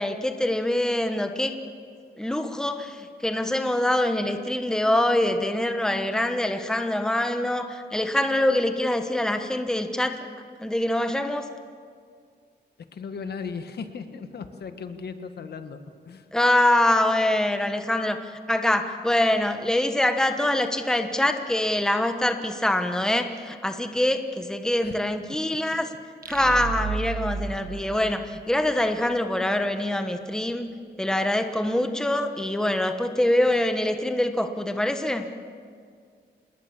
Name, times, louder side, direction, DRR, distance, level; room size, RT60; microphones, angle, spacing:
voice 1, 0.0-1.5 2.2-10.3 10.6-11.5 16.3-25.9 26.3-30.7 31.0-35.3, left 1 dB, 5° left, 6 dB, 1.3 m, -24 dB
voice 2, 12.9-15.8 16.1-16.2 24.8-25.0 25.3-25.6, left 5 dB, 65° left, 8 dB, 1.5 m, -37 dB
sound 1, 26.2-28.9, right 5 dB, 50° right, 1.4 m, -33 dB
27.0 x 20.5 x 7.4 m, 2.1 s
wide cardioid pair, 140°, 18 cm